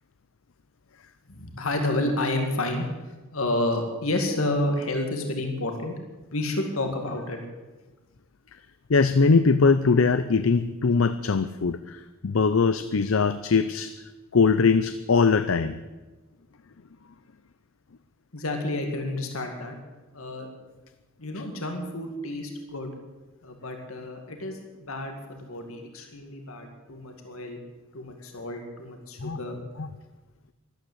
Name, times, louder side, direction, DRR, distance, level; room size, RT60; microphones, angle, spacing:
voice 1, 1.3-2.9 3.3-5.9 6.3-7.4 18.3-19.8 20.1-20.5 21.2-22.9 23.4-27.6 27.9-29.6, left 1 dB, 85° left, 4 dB, 2.2 m, -30 dB
voice 2, 8.9-13.9 14.3-15.8 29.2-29.4 29.8-29.9, left 4 dB, 70° left, 12 dB, 0.6 m, -21 dB
13.0 x 12.5 x 8.1 m, 1.2 s
head